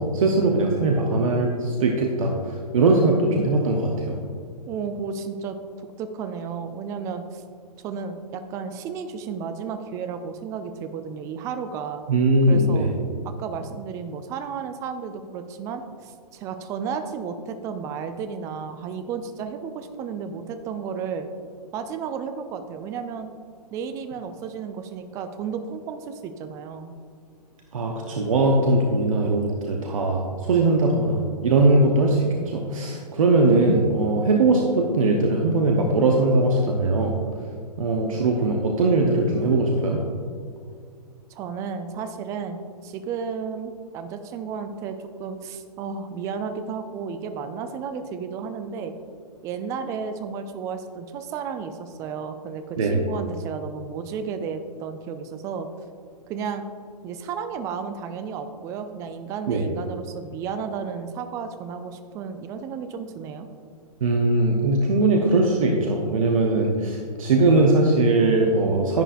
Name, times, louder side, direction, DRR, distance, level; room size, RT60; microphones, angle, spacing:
voice 1, 0.0-4.2 12.1-12.9 27.7-37.1 37.8-40.0 52.8-53.0 59.5-59.6 64.0-69.0, right 2 dB, 55° right, 1 dB, 1.0 m, -20 dB
voice 2, 4.7-5.6 6.0-7.4 7.8-12.0 12.5-12.9 13.2-21.3 21.7-23.3 23.7-26.9 41.3-48.9 49.4-55.7 56.3-56.7 57.0-63.5, right 6 dB, 15° right, 8 dB, 0.4 m, -33 dB
10.5 x 9.9 x 2.5 m, 2.1 s
figure-of-eight pair, 120°, 21 cm